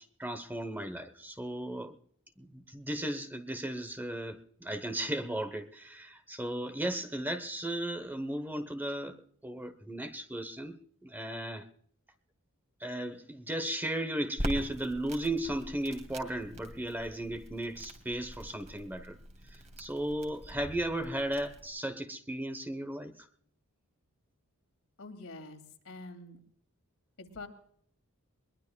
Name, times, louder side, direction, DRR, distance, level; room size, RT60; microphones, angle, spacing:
voice 1, 0.0-2.0 2.4-9.2 9.4-11.7 12.8-19.2 19.5-23.1, right 1 dB, 10° right, 11 dB, 0.9 m, -35 dB
Crackle, 14.4-21.7, equal, 30° right, 2.6 m, -43 dB
voice 2, 25.0-26.4 27.2-27.5, left 2 dB, 70° left, 5 dB, 2.6 m, -46 dB
22.0 x 21.5 x 2.3 m, 0.63 s
head